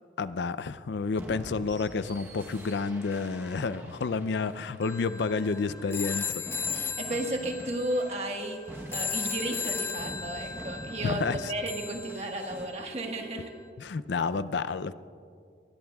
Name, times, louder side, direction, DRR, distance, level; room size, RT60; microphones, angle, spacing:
voice 1, 0.0-6.4 11.0-11.5 13.8-14.9, left 4 dB, 80° left, 15 dB, 0.5 m, -30 dB
sound 1, 1.1-12.7, equal, 15° right, 1.0 m, -46 dB
sound 2, 4.8-12.9, left 5 dB, 15° left, 0.4 m, -36 dB
voice 2, 6.7-11.2 11.5-13.5, right 1 dB, 35° right, 2 dB, 1.4 m, -33 dB
24.0 x 20.0 x 2.3 m, 2.3 s
head